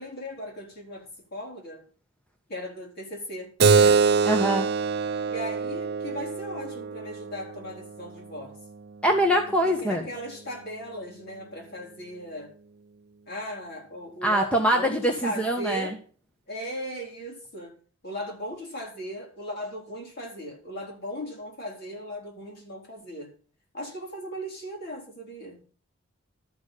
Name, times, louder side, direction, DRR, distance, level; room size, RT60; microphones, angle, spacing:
voice 1, 0.0-1.8 2.5-4.0 5.3-8.6 9.5-12.5 13.3-16.0 16.5-17.8 18.0-23.3 23.7-25.6, equal, 50° left, 4.7 m, -37 dB
Keyboard (musical), 3.6-8.7, right 5 dB, 50° right, 0.6 m, -24 dB
voice 2, 4.3-4.7 9.0-10.0 14.2-15.9, right 1 dB, 5° left, 1.3 m, -23 dB
13.0 x 6.2 x 8.3 m
head